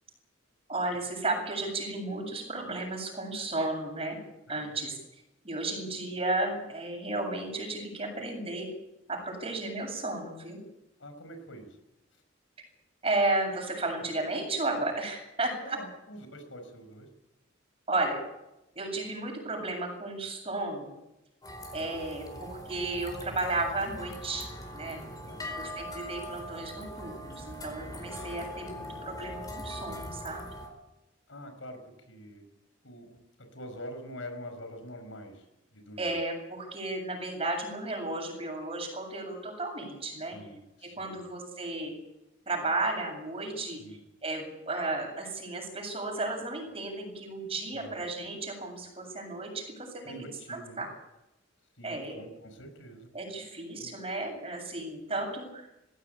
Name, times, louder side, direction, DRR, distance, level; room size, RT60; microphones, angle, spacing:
voice 1, 0.7-4.2 4.5-5.0 5.4-8.7 9.1-10.6 13.0-15.8 17.9-18.2 18.7-20.9 21.7-24.4 24.7-25.0 25.5-30.5 36.0-40.4 40.8-41.9 42.5-43.8 44.2-50.9 51.8-52.2 53.1-55.7, right 2 dB, 30° right, 1 dB, 7.8 m, -33 dB
voice 2, 11.0-11.8 15.6-17.1 21.7-21.9 25.3-25.7 31.3-32.4 32.8-35.5 35.7-36.1 40.2-41.2 43.6-44.0 47.7-48.0 50.0-50.9 51.8-53.1 53.8-53.9, equal, 85° left, 7 dB, 5.1 m, -45 dB
sound 1, 21.4-30.7, equal, 20° left, 4.6 m, -41 dB
20.0 x 16.5 x 8.9 m, 0.91 s
head